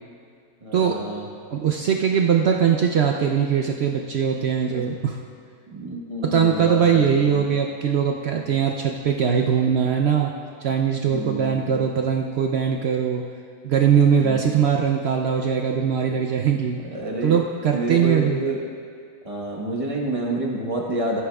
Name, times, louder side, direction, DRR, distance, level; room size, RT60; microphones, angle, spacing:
voice 1, 0.6-1.3 4.7-4.8 5.7-7.5 11.0-11.7 14.2-14.4 16.2-17.4 17.7-18.6 19.2-21.2, right 2 dB, 25° right, -1 dB, 1.1 m, -29 dB
voice 2, 1.5-5.2 6.2-10.3 10.6-13.2 13.6-16.8 17.2-18.4, right 7 dB, 70° right, 2 dB, 0.6 m, -21 dB
14.5 x 9.1 x 2.3 m, 2.3 s
omnidirectional pair, 1.6 m